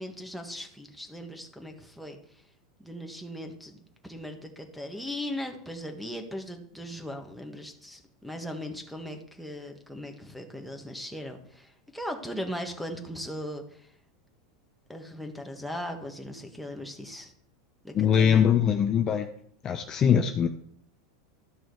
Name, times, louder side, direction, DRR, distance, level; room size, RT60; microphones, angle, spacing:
voice 1, 0.0-2.2 2.8-13.9 14.9-17.3 17.8-18.5, equal, ahead, 2 dB, 1.6 m, -38 dB
voice 2, 17.9-19.3 19.6-20.5, left 8 dB, 30° left, 6 dB, 0.7 m, -22 dB
12.5 x 6.2 x 4.7 m, 0.65 s
supercardioid pair, 125°, 2 cm